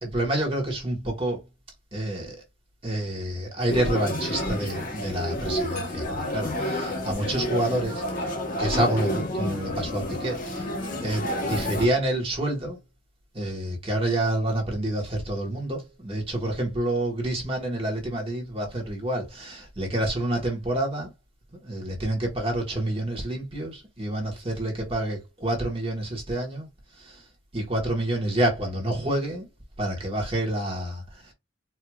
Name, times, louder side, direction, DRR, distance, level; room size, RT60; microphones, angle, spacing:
voice 1, 0.0-1.4 1.9-2.4 2.8-8.0 8.6-10.6 11.0-12.8 13.3-21.1 21.6-26.7 27.0-27.2 27.5-29.5 29.8-31.0, right 1 dB, 30° right, 1.3 m, -28 dB
sound 1, 3.7-11.9, left 1 dB, 45° left, 1.1 m, -30 dB
4.4 x 2.7 x 2.3 m
head